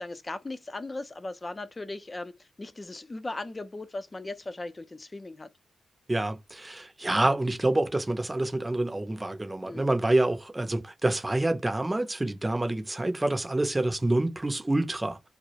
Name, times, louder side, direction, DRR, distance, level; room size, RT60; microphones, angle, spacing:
voice 1, 0.0-5.5 9.6-9.9, left 2 dB, 30° left, 0.5 m, -38 dB
voice 2, 6.1-15.3, right 2 dB, 20° right, 0.6 m, -27 dB
2.2 x 2.0 x 2.8 m
supercardioid pair, 50°, 0 cm